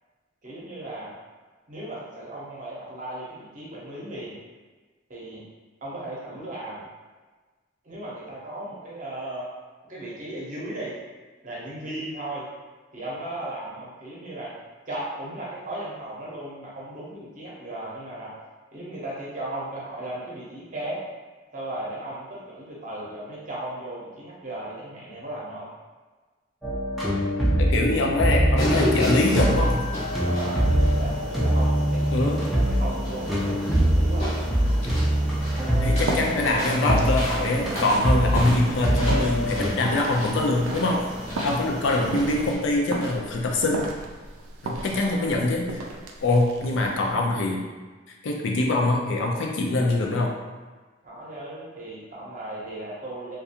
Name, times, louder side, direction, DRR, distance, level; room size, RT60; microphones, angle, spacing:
voice 1, 0.4-1.1 1.7-4.4 5.1-5.4 5.8-6.9 7.8-9.5 9.9-10.9 11.4-12.5 12.9-14.5 14.9-18.3 18.7-21.0 21.5-25.7 30.2-34.5 44.7-45.4 51.0-53.4, right 1 dB, 40° right, -6 dB, 0.7 m, -36 dB
sound 1, 26.6-39.7, equal, ahead, 0.4 m, -24 dB
voice 2, 27.6-29.8 32.1-32.4 35.8-41.1 41.4-43.8 44.6-45.7 46.2-47.7 48.2-50.3, left 2 dB, 65° left, 0 dB, 0.4 m, -24 dB
sound 2, 28.6-42.5, left 1 dB, 35° left, 0.7 m, -33 dB
sound 3, 35.1-47.1, right 2 dB, 80° right, 0.3 m, -35 dB
2.4 x 2.3 x 2.7 m, 1.3 s
head